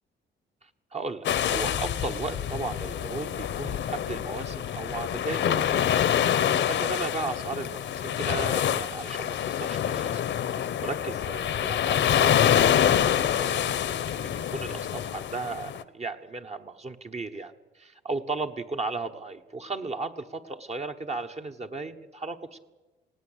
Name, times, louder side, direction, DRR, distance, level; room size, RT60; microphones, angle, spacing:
voice 1, 0.6-6.0 6.7-13.7 14.1-22.6, right 3 dB, 35° right, 5 dB, 1.3 m, -36 dB
sound 1, 1.2-15.8, left 10 dB, 65° left, 1.1 m, -26 dB
19.0 x 17.5 x 8.2 m, 1.2 s
cardioid pair, 90°, 20 cm